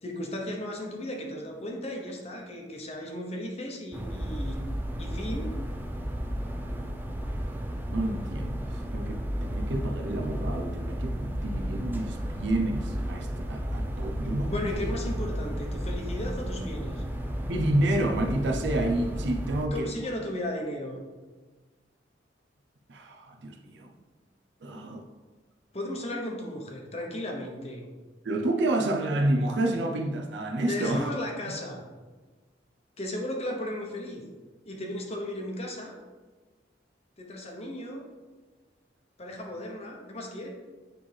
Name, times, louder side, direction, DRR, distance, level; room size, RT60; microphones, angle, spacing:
voice 1, 0.0-4.6 5.0-5.5 14.1-17.0 19.7-21.0 25.7-27.8 30.6-31.8 33.0-34.2 34.6-36.0 37.2-38.0 39.2-40.5, left 1 dB, 35° left, 1.0 m, -35 dB
sound 1, 3.9-19.6, equal, 10° right, 0.4 m, -33 dB
voice 2, 7.9-8.6 8.9-14.5 17.5-19.9 22.9-23.9 24.6-25.1 28.2-31.1, right 1 dB, 70° right, 0.7 m, -29 dB
9.2 x 3.5 x 3.4 m
head